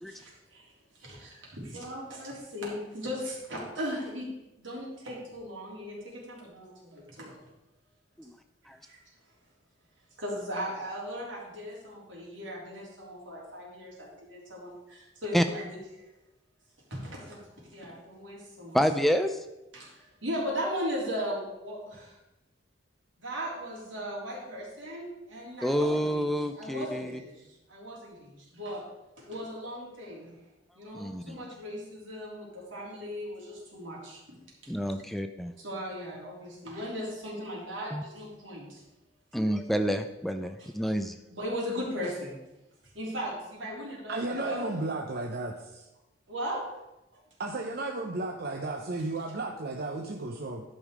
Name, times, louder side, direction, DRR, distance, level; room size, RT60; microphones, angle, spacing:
voice 1, 0.1-0.7 1.0-4.3 4.6-7.4 8.9-9.0 10.2-15.8 16.9-17.4 17.7-18.8 19.7-22.1 23.2-28.8 29.2-30.4 30.7-34.2 35.6-38.8 41.3-42.4 42.9-44.7 46.3-46.6, equal, 80° right, -4 dB, 3.4 m, -37 dB
voice 2, 18.7-19.4 25.6-27.2 30.9-31.4 34.7-35.5 37.9-38.0 39.3-41.2, equal, ahead, 7 dB, 0.4 m, -28 dB
voice 3, 44.1-45.9 47.4-50.6, right 2 dB, 55° right, 1 dB, 0.8 m, -34 dB
11.5 x 5.5 x 5.0 m, 0.97 s
head